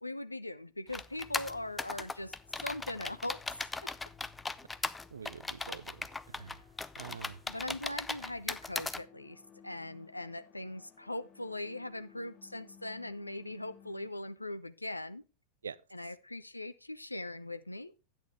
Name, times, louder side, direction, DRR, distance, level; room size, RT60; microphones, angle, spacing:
voice 1, 0.0-2.3 2.6-3.4 3.8-3.9 7.5-15.2 15.9-17.9, left 1 dB, 85° left, 0.4 m, -40 dB
sound 1, 0.9-9.0, left 3 dB, 10° left, 0.4 m, -38 dB
sound 2, 1.2-14.1, left 9 dB, 35° left, 1.4 m, -60 dB
voice 2, 5.1-6.7 6.9-7.8 15.6-16.1, right 6 dB, 70° right, 0.5 m, -47 dB
10.5 x 8.9 x 3.3 m
figure-of-eight pair, 90°, 0 cm